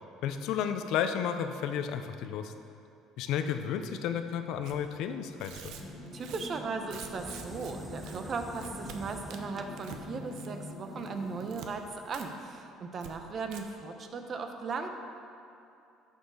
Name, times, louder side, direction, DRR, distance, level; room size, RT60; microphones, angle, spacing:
voice 1, 0.2-2.5 3.2-5.7, left 8 dB, 70° left, 8 dB, 0.6 m, -32 dB
Tearing, 4.6-4.8 5.3-7.7 8.0-8.2 8.5-9.0 9.3-10.0 10.3-10.7 11.0-11.7 12.1-12.3 12.5-12.6 13.0-13.1 13.4-13.6, right 8 dB, 70° right, 0.7 m, -47 dB
sound 1, 5.8-11.6, left 2 dB, 50° left, 1.6 m, -44 dB
voice 2, 6.1-14.9, right 4 dB, 40° right, 5 dB, 0.8 m, -37 dB
sound 2, 7.2-12.2, right 2 dB, 15° right, 0.4 m, -49 dB
11.5 x 6.5 x 4.0 m, 2.7 s
cardioid pair, 110°, 0 cm